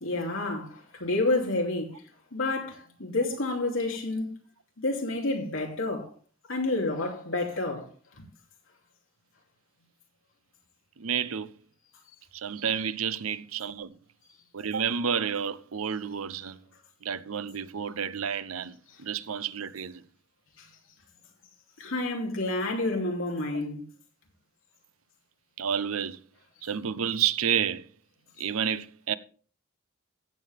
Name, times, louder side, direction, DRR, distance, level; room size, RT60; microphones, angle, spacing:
voice 1, 0.0-2.0 2.3-4.3 4.8-6.1 6.5-7.9 8.2-8.3 20.6-20.7 21.8-23.8, left 2 dB, 70° left, 2.7 m, -29 dB
voice 2, 11.0-11.5 12.3-14.0 14.5-16.6 17.0-20.0 25.6-26.2 26.6-27.9 28.4-29.1, right 7 dB, 85° right, 0.7 m, -30 dB
15.5 x 7.5 x 3.5 m
head